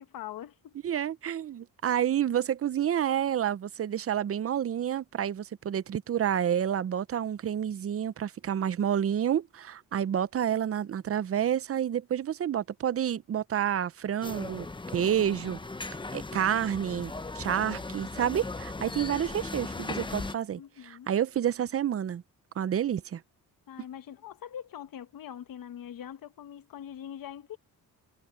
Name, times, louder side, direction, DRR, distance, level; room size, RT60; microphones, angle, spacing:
voice 1, 0.0-0.7 19.3-19.9 20.6-21.1 23.7-27.6, left 10 dB, 75° left, 1.3 m, -43 dB
voice 2, 0.8-14.7 14.9-15.6 16.1-22.2 22.6-23.2, right 9 dB, 40° right, 0.6 m, -29 dB
sound 1, 14.2-20.4, left 3 dB, 15° left, 0.9 m, -38 dB
cardioid pair, 100°, 35 cm